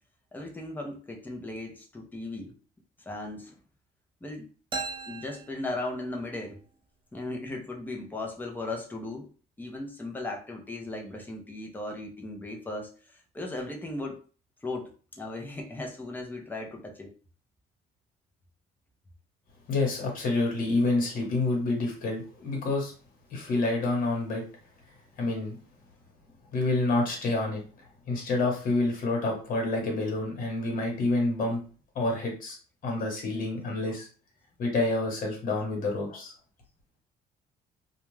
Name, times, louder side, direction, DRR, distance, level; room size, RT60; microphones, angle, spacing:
voice 1, 0.3-2.5 3.1-3.5 4.2-4.5 5.1-6.6 7.1-9.3 9.6-14.2 14.6-17.1, left 2 dB, 10° left, 1 dB, 0.7 m, -37 dB
sound 1, 4.7-6.4, right 4 dB, 30° right, 0.6 m, -38 dB
voice 2, 19.7-22.9 23.3-24.4 25.2-25.6 26.5-27.6 28.1-31.6 31.9-32.6 32.8-34.1 34.6-36.3, left 2 dB, 55° left, 0 dB, 1.2 m, -28 dB
2.4 x 2.3 x 3.1 m, 0.38 s
cardioid pair, 110°, 17 cm